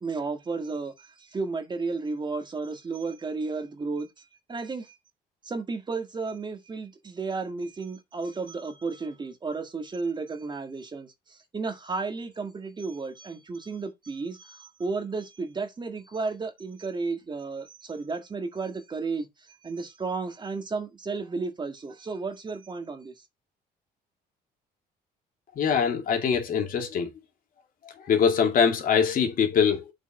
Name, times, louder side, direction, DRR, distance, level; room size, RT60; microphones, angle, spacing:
voice 1, 0.0-5.0 5.4-23.1, right 4 dB, 25° right, 1.6 m, -33 dB
voice 2, 25.6-27.1 28.0-29.9, left 7 dB, 55° left, 2.5 m, -23 dB
8.0 x 4.6 x 4.2 m
cardioid pair, 110°, 17 cm